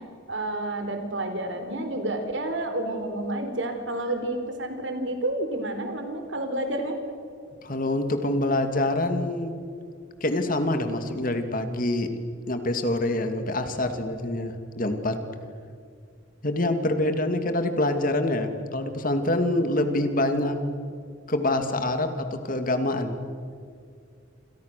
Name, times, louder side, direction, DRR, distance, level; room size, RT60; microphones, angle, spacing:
voice 1, 0.3-7.0, right 1 dB, 70° right, 6 dB, 4.3 m, -30 dB
voice 2, 7.6-9.5 10.2-12.1 12.5-15.2 16.4-20.6 21.3-23.1, left 1 dB, 45° left, 7 dB, 2.5 m, -26 dB
29.0 x 27.5 x 6.9 m, 2.2 s
head